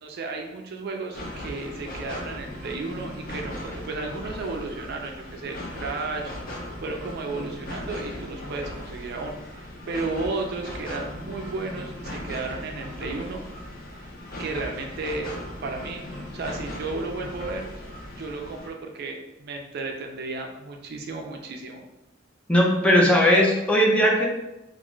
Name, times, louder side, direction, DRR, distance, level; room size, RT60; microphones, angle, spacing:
voice 1, 0.0-13.5 14.4-16.0 16.3-17.7 18.2-21.8, right 3 dB, 55° right, 3 dB, 0.4 m, -33 dB
sound 1, 1.1-18.7, left 1 dB, 50° left, 0.6 m, -38 dB
voice 2, 22.5-24.2, equal, 5° left, -2 dB, 0.4 m, -18 dB
2.5 x 2.4 x 3.0 m, 0.93 s
head